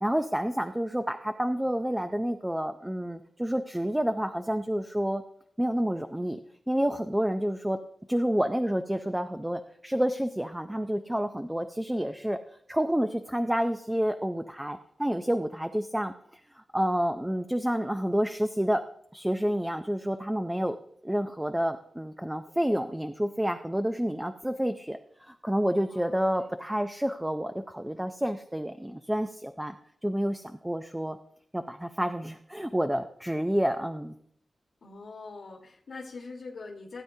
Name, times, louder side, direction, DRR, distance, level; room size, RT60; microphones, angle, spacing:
voice 1, 0.0-5.2 5.6-6.4 6.7-7.8 8.1-12.4 12.7-16.1 16.6-18.8 19.1-20.8 21.0-25.0 25.3-29.7 30.0-31.2 31.5-34.1, equal, 5° right, 7 dB, 0.5 m, -29 dB
voice 2, 25.9-26.5 34.8-37.0, left 3 dB, 65° left, -1 dB, 1.4 m, -43 dB
16.5 x 9.3 x 2.7 m, 0.67 s
wide cardioid pair, 155°, 0 cm